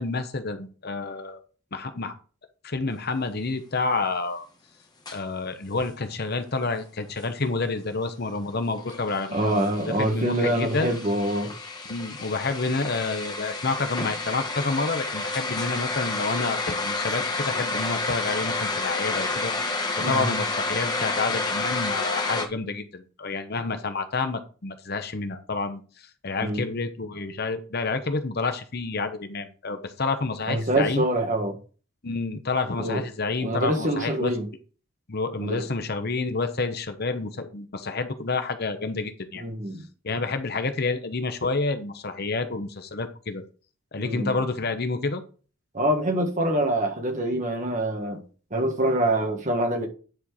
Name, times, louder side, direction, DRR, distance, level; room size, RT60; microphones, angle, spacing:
voice 1, 0.0-1.4 1.7-2.1 2.6-4.5 5.1-9.7 10.0-10.9 11.8-19.5 20.0-31.1 32.0-34.3 35.1-39.4 40.0-43.4 43.9-45.2, left 3 dB, 45° left, 0.9 m, -29 dB
sound 1, 5.1-5.2 8.8-22.5, left 3 dB, 20° left, 1.1 m, -30 dB
voice 2, 9.3-11.5 20.0-20.3 26.4-26.6 30.5-31.6 32.8-33.0 33.4-34.5 35.4-35.6 39.3-39.8 44.0-44.4 45.7-48.2 48.5-49.9, right 1 dB, 35° right, 1.6 m, -25 dB
9.8 x 4.4 x 4.9 m
head